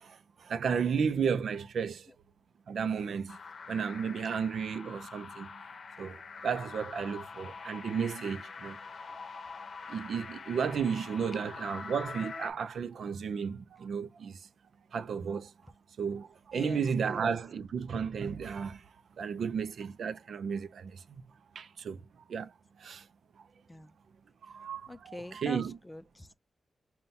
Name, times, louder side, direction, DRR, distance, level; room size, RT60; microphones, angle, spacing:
voice 1, 0.0-2.1 2.7-3.4 3.7-5.6 6.0-6.2 6.4-8.8 9.3-9.4 9.8-14.5 14.9-15.5 16.0-18.9 19.2-21.2 21.5-22.0 22.3-23.1 24.4-25.8, right 6 dB, 85° right, 0.4 m, -33 dB
sound 1, 3.3-12.5, left 4 dB, 55° left, 0.7 m, -44 dB
voice 2, 24.9-26.3, left 1 dB, 15° left, 0.3 m, -44 dB
5.4 x 2.2 x 2.7 m
wide cardioid pair, 165°, 0 cm